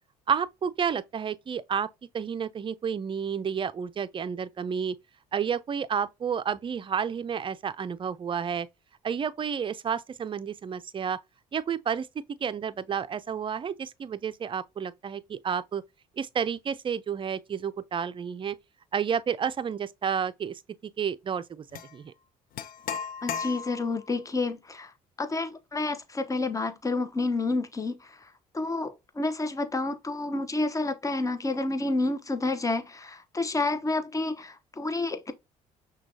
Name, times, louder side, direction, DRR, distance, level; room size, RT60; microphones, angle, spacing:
voice 1, 0.3-1.9 2.1-5.0 5.3-8.7 9.0-11.2 11.5-12.1 12.4-15.8 16.2-18.6 18.9-21.7 21.9-22.1, right 7 dB, 30° right, 0.4 m, -30 dB
sound 1, 21.7-21.9 22.6-24.0, left 7 dB, 60° left, 0.5 m, -35 dB
voice 2, 23.2-24.9 25.2-35.3, left 2 dB, 20° left, 0.8 m, -29 dB
6.0 x 2.3 x 2.7 m
supercardioid pair, 65°, 17 cm